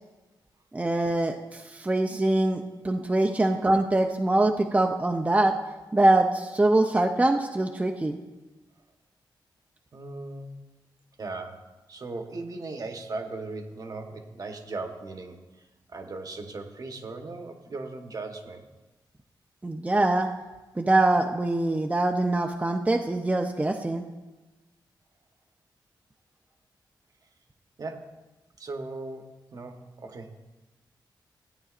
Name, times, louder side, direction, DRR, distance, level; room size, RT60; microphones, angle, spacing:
voice 1, 0.7-5.5 5.9-8.2 19.6-20.3 20.8-24.0, right 2 dB, 15° right, 3 dB, 0.5 m, -23 dB
voice 2, 9.9-10.6 11.2-15.4 15.9-18.6 27.8-28.1 28.6-29.2 29.5-30.3, right 3 dB, 50° right, 5 dB, 1.0 m, -38 dB
14.5 x 8.7 x 2.4 m, 1.2 s
wide cardioid pair, 95°, 8 cm